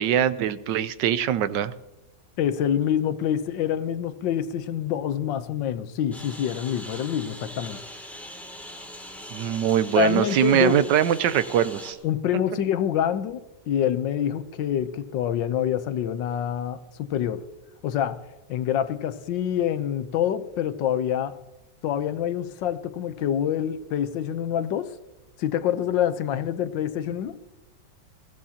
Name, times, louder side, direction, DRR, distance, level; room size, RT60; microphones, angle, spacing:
voice 1, 0.0-1.7 9.3-12.0, right 10 dB, 75° right, 1.3 m, -22 dB
voice 2, 2.4-7.8 10.0-10.8 12.0-17.4 17.8-18.2 18.5-21.4 21.8-24.9 25.4-27.4, left 9 dB, 80° left, 1.5 m, -26 dB
Engine, 6.1-11.9, left 1 dB, ahead, 2.3 m, -41 dB
22.0 x 15.5 x 2.9 m
omnidirectional pair, 2.0 m